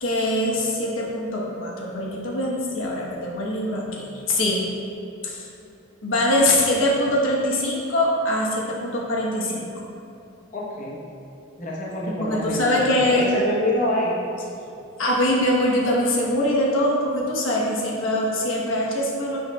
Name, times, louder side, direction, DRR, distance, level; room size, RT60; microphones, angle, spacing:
voice 1, 0.0-4.7 5.2-5.5 6.0-9.8 12.1-13.3 15.0-19.4, left 1 dB, 80° left, -3 dB, 1.2 m, -23 dB
voice 2, 10.5-11.0 11.6-14.2, left 1 dB, 40° left, -5 dB, 1.1 m, -27 dB
10.0 x 6.5 x 2.4 m, 2.9 s
head